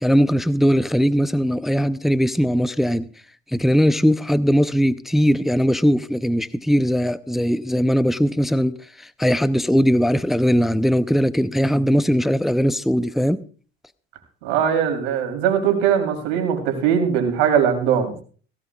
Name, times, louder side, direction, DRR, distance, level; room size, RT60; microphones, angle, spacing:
voice 1, 0.0-3.1 3.5-13.4, equal, ahead, 0.5 m, -19 dB
voice 2, 14.4-18.2, right 8 dB, 80° right, 3.3 m, -20 dB
17.0 x 16.0 x 2.3 m
hypercardioid pair, 80°, 33 cm